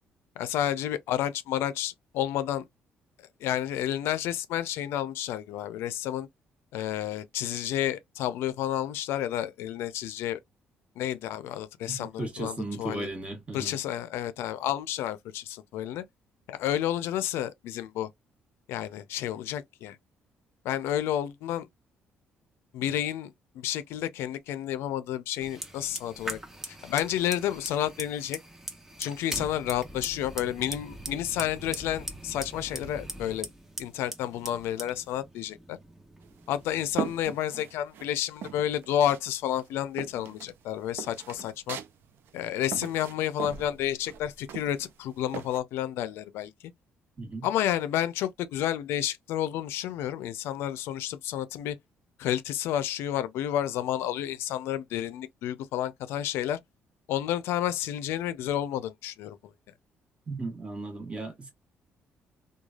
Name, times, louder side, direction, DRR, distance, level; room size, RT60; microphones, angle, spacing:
voice 1, 0.4-2.7 3.4-6.3 6.7-10.4 11.0-13.1 13.5-16.0 16.5-18.1 18.7-20.0 20.6-21.7 22.7-26.4 26.7-28.4 29.0-33.5 33.8-35.8 36.5-41.8 42.3-46.5 47.4-51.8 52.2-56.6 57.1-59.5, left 11 dB, 85° left, 0.4 m, -30 dB
voice 2, 11.9-13.8 47.2-47.5 60.3-61.5, right 2 dB, 30° right, 1.2 m, -36 dB
Fire, 25.4-37.2, right 1 dB, 10° right, 0.7 m, -41 dB
sound 1, 36.2-38.1 38.4-39.3 39.5-45.6, right 8 dB, 70° right, 0.4 m, -39 dB
3.1 x 2.3 x 2.3 m
cardioid pair, 95°, 4 cm